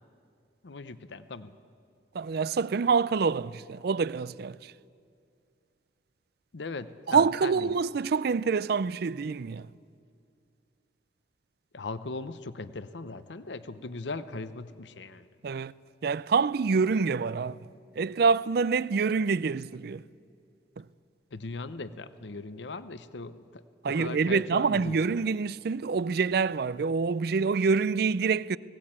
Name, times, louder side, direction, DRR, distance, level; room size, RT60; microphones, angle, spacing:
voice 1, 0.6-1.5 6.5-7.8 11.7-15.3 21.3-25.2, left 3 dB, 75° left, 0.7 m, -39 dB
voice 2, 2.1-4.6 7.1-9.7 15.4-15.7 16.0-17.6 18.0-20.0 20.8-20.9 23.8-28.6, right 5 dB, 55° right, 0.4 m, -26 dB
19.0 x 17.0 x 8.8 m
head